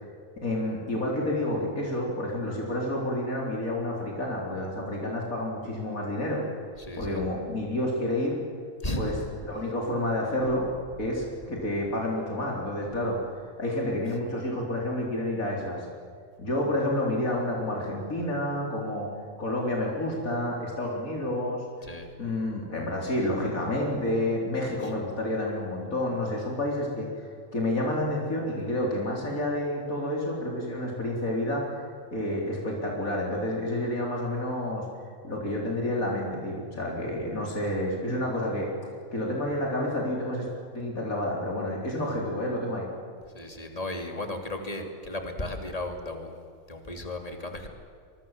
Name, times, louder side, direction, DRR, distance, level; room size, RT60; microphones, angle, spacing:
voice 1, 0.4-6.4 7.0-8.4 9.0-9.1 9.4-10.7 11.0-13.2 13.6-15.8 16.4-19.1 19.4-21.6 22.2-27.1 27.5-31.8 32.1-34.9 35.2-38.7 39.1-42.9, left 1 dB, 80° left, -2 dB, 4.5 m, -29 dB
voice 2, 6.8-7.2 8.8-9.1 21.8-22.1 24.8-24.9 43.3-47.7, left 1 dB, 25° left, 4 dB, 3.1 m, -35 dB
26.0 x 22.5 x 7.5 m, 2.3 s
omnidirectional pair, 1.4 m